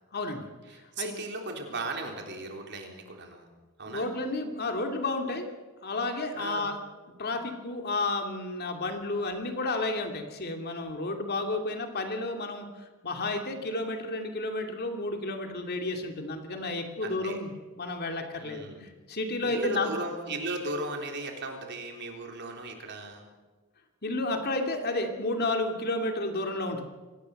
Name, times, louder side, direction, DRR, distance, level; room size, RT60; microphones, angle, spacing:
voice 1, 0.1-0.5 1.0-1.1 3.9-5.5 5.8-6.8 7.2-17.5 17.8-18.6 19.1-19.9 24.0-26.9, left 2 dB, 45° left, 4 dB, 2.6 m, -31 dB
voice 2, 0.7-3.5 3.8-4.1 6.4-6.7 17.0-17.4 18.4-18.9 19.4-23.3, right 2 dB, 55° right, 3 dB, 3.8 m, -37 dB
24.5 x 18.5 x 6.6 m, 1.3 s
head